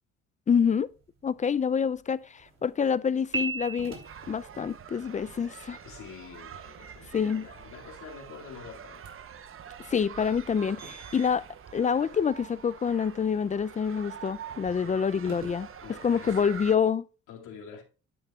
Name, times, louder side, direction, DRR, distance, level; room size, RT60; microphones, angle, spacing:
voice 1, 0.5-0.9 1.2-4.0 4.3-5.8 7.1-7.5 9.9-11.4 11.7-15.7 16.0-17.1, left 6 dB, 25° left, 0.4 m, -27 dB
sound 1, 0.5-16.7, right 4 dB, 65° right, 3.3 m, -54 dB
Piano, 3.3-4.4, right 3 dB, 15° right, 2.6 m, -33 dB
sound 2, 4.0-16.8, right 8 dB, 45° right, 0.8 m, -46 dB
voice 2, 5.8-9.1 14.8-15.0 15.8-16.5 17.3-17.8, left 6 dB, 80° left, 2.3 m, -46 dB
10.5 x 9.6 x 2.4 m
cardioid pair, 90°, 30 cm